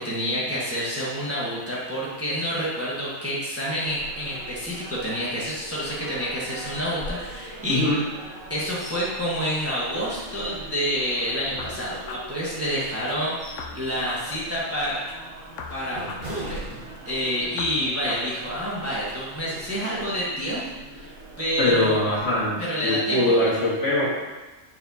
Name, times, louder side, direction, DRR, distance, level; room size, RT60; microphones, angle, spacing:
voice 1, 0.0-7.8 8.5-15.0 15.7-16.8 17.0-20.6 20.9-21.1 21.4-22.2 22.6-23.5, equal, 10° right, -7 dB, 1.3 m, -28 dB
sound 1, 3.8-22.5, right 1 dB, 70° right, 1.2 m, -42 dB
voice 2, 7.7-8.0 21.6-24.1, left 1 dB, 50° left, -6 dB, 1.8 m, -22 dB
sound 2, 8.8-9.1 9.5-9.6 10.1-10.9 11.4-12.4 13.0-13.8 14.2-14.4 15.0-17.4 17.8-18.0, equal, 40° right, 1.5 m, -42 dB
sound 3, 11.6-13.2 13.6-15.2 15.6-17.2 17.6-19.2, left 4 dB, 70° left, 1.0 m, -41 dB
8.8 x 4.4 x 2.7 m, 1.1 s
omnidirectional pair, 1.4 m